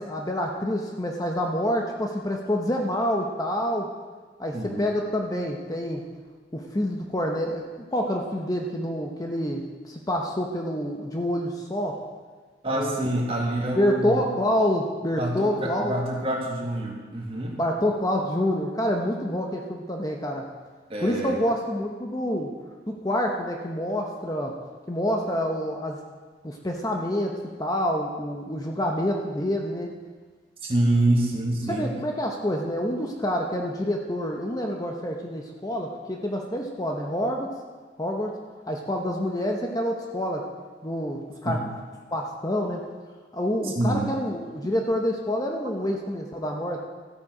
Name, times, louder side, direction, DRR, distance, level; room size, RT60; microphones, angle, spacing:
voice 1, 0.0-3.9 4.4-6.0 6.5-7.6 7.9-12.0 12.7-13.1 13.8-15.9 17.6-20.4 21.0-22.5 22.9-24.6 24.9-26.0 26.4-29.9 31.7-37.5 38.0-38.4 38.7-40.5 40.8-41.6 42.1-42.9 43.3-46.8, equal, 20° left, 1 dB, 0.9 m, -27 dB
voice 2, 12.6-14.2 15.2-17.6 20.9-21.4 30.6-31.9 41.4-41.6 43.6-44.1, right 1 dB, 30° right, -1 dB, 1.7 m, -26 dB
14.0 x 8.4 x 4.9 m, 1.4 s
head